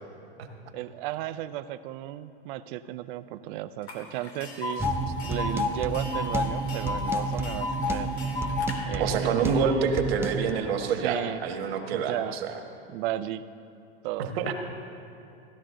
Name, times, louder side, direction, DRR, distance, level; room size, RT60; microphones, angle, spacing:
voice 1, 0.7-4.8 5.3-8.2 8.8-9.9 10.8-11.5 11.9-12.4 12.9-13.4 14.0-14.3, right 14 dB, 55° right, 12 dB, 0.6 m, -34 dB
Tick, 3.9-4.0 4.2-8.7, left 4 dB, 90° left, 2.5 m, -31 dB
sound 1, 4.8-10.5, right 4 dB, 10° right, 0.4 m, -32 dB
voice 2, 9.0-12.1 12.4-12.5 14.3-14.5, right 6 dB, 70° right, 4 dB, 1.5 m, -27 dB
15.5 x 11.5 x 3.8 m, 2.7 s
hypercardioid pair, 120°, 32 cm